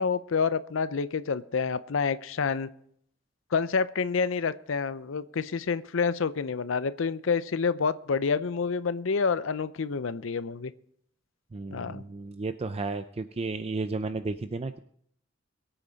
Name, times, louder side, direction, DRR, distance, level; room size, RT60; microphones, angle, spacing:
voice 1, 0.0-2.7 3.5-10.7 11.7-12.0, left 5 dB, 75° left, 14 dB, 0.6 m, -28 dB
voice 2, 11.5-14.8, right 3 dB, 30° right, 10 dB, 0.5 m, -33 dB
22.5 x 8.9 x 4.0 m, 0.67 s
head